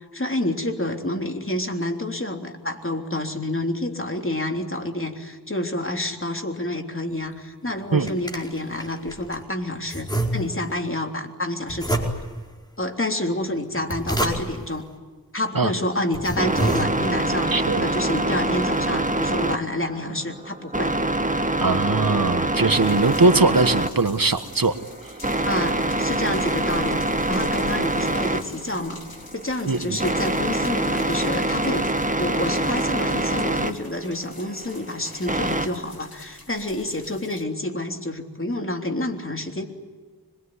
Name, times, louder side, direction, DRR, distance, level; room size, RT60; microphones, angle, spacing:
voice 1, 0.1-12.1 12.8-14.9 15.3-20.9 25.5-27.0 27.3-29.0 29.3-31.9 32.2-39.6, left 1 dB, 30° left, 4 dB, 3.5 m, -28 dB
sound 1, 7.7-9.4 9.9-10.8 11.7-12.5 13.6-14.7 15.5-15.6 16.0-17.3, right 1 dB, 10° left, 4.6 m, -28 dB
sound 2, 15.8-35.7, right 1 dB, 20° right, 1.8 m, -25 dB
voice 2, 17.5-17.8 21.6-24.8 25.0-25.1 29.7-30.0, right 3 dB, 60° right, 10 dB, 1.5 m, -21 dB
sound 3, 22.7-37.4, left 2 dB, 65° left, 3.4 m, -45 dB
26.0 x 22.0 x 9.9 m, 1.4 s
wide cardioid pair, 50°, 39 cm